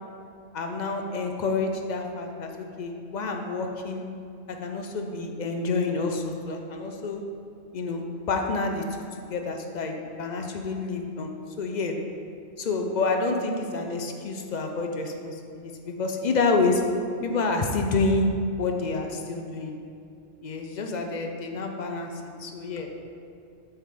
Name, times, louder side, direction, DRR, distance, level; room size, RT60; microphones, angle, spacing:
voice 1, 0.5-4.0 4.5-7.2 7.7-8.8 9.3-11.9 12.6-16.8 17.2-18.3 18.6-19.7 20.4-22.1 22.4-23.0, left 3 dB, 55° left, 3 dB, 0.5 m, -28 dB
7.2 x 3.5 x 5.1 m, 2.5 s
omnidirectional pair, 1.1 m